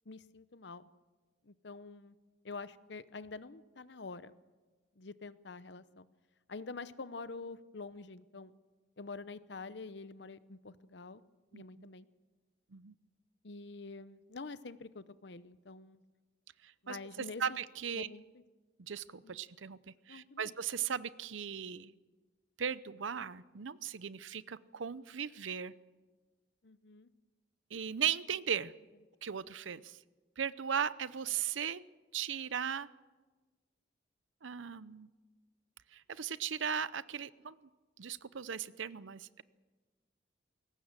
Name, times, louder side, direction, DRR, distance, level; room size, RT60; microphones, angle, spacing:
voice 1, 0.1-0.8 1.4-2.1 2.4-4.4 5.0-6.1 6.5-8.5 9.0-11.2 11.5-12.1 13.4-16.0 16.8-17.4 17.9-18.3 19.2-19.3 20.1-20.5 26.6-27.1, left 3 dB, 65° left, 14 dB, 0.8 m, -46 dB
voice 2, 11.5-11.9 12.7-12.9 16.6-17.0 17.4-18.1 18.8-19.8 20.1-21.9 22.6-25.7 27.7-28.7 29.2-30.0 30.4-31.8 32.1-32.9 34.4-35.1 35.9-37.6 38.0-39.4, right 8 dB, 85° right, 17 dB, 0.7 m, -37 dB
21.5 x 18.5 x 7.5 m, 1.3 s
head